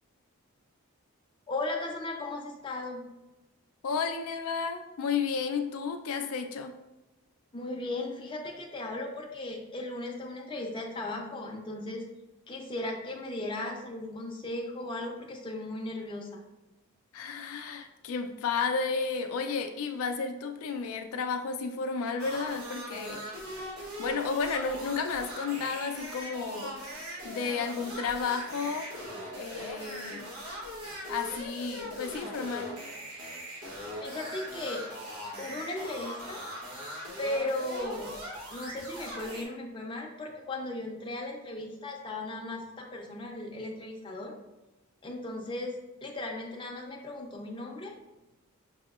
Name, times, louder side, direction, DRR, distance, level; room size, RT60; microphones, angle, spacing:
voice 1, 1.5-3.0 7.5-12.0 12.5-16.4 34.0-34.9 35.4-36.4 37.2-38.2 38.5-44.3 45.0-45.7 46.0-47.9, left 2 dB, 20° left, 0 dB, 0.5 m, -36 dB
voice 2, 3.8-6.7 17.1-23.3 24.0-26.8 27.2-28.9 29.4-30.3 31.1-32.7, left 5 dB, 80° left, 6 dB, 0.4 m, -32 dB
sound 1, 22.2-39.4, equal, 85° right, 1.0 m, -40 dB
6.1 x 2.7 x 2.4 m, 1.0 s
head